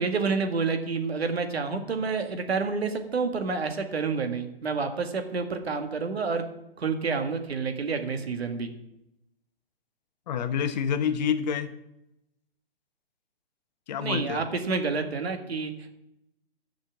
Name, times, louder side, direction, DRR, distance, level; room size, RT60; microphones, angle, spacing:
voice 1, 0.0-6.4 6.8-8.7 14.0-15.7, right 4 dB, 85° right, 7 dB, 1.9 m, -29 dB
voice 2, 10.3-11.7 13.9-14.4, left 7 dB, 45° left, 11 dB, 1.0 m, -27 dB
11.0 x 6.3 x 7.2 m, 0.86 s
hypercardioid pair, 145°, 30 cm